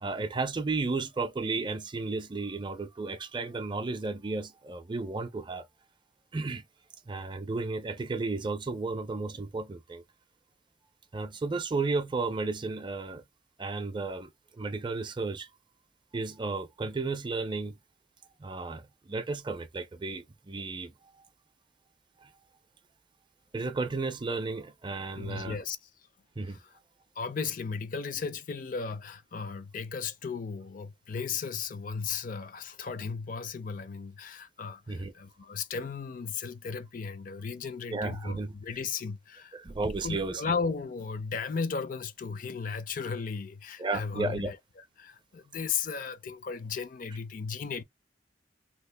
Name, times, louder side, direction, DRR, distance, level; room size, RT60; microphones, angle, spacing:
voice 1, 0.0-5.7 6.3-6.6 7.1-10.0 11.1-13.2 13.6-15.5 16.1-17.8 18.4-20.9 22.2-22.3 23.5-25.6 26.4-26.6 34.9-35.1 37.9-38.5 39.5-40.4 43.8-44.5, right 3 dB, 25° right, 0.4 m, -33 dB
voice 2, 25.1-25.8 26.5-26.7 27.2-39.6 40.0-47.8, left 5 dB, 50° left, 0.4 m, -35 dB
2.9 x 2.4 x 3.3 m
head